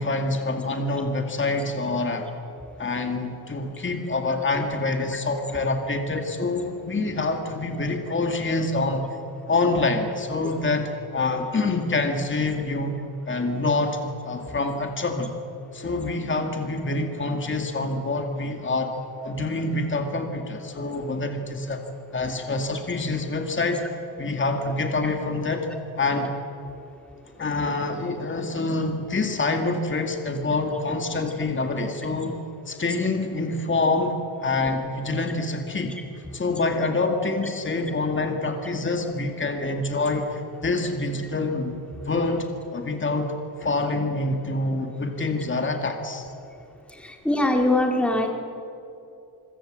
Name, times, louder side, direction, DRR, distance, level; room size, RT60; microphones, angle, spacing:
voice 1, 0.0-2.3 2.8-9.1 9.5-13.0 13.3-15.3 15.7-18.9 19.2-21.8 22.1-23.8 24.2-25.7 26.0-26.3 27.4-36.0 36.3-41.8 42.0-43.3 43.6-46.3, left 3 dB, 30° left, 4 dB, 2.2 m, -26 dB
voice 2, 47.0-48.3, left 1 dB, 5° left, 2 dB, 2.1 m, -22 dB
26.5 x 23.5 x 7.6 m, 2.7 s
wide cardioid pair, 170°, 40 cm